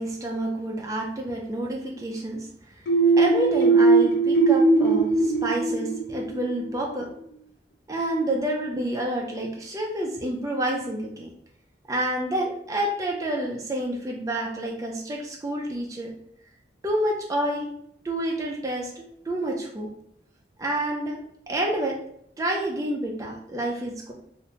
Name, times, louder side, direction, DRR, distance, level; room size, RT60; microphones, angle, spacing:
voice 1, 0.0-2.5 3.2-7.1 7.9-11.3 11.9-16.1 16.8-17.7 18.0-19.9 20.6-22.0 22.4-24.1, right 1 dB, 20° right, -1 dB, 0.3 m, -28 dB
sound 1, 2.9-6.5, right 3 dB, 90° left, 0.6 m, -20 dB
2.8 x 2.1 x 2.6 m, 0.70 s
head